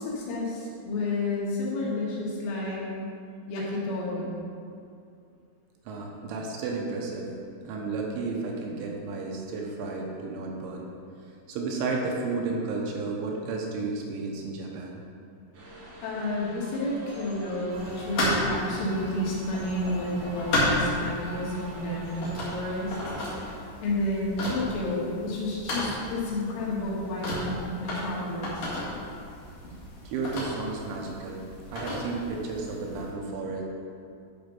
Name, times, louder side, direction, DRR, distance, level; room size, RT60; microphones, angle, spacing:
voice 1, 0.0-2.8 3.5-4.4 16.0-23.2 23.8-28.7, left 1 dB, 80° left, -6 dB, 4.4 m, -30 dB
voice 2, 5.9-7.3 7.6-10.9 11.5-15.0 30.1-31.4 31.7-33.6, right 3 dB, 80° right, -1 dB, 3.0 m, -32 dB
sound 1, 15.5-23.5, right 1 dB, 60° right, 3.3 m, -44 dB
sound 2, 17.7-33.1, left 1 dB, 50° left, 2.4 m, -33 dB
11.5 x 4.3 x 5.7 m, 2.4 s
omnidirectional pair, 5.6 m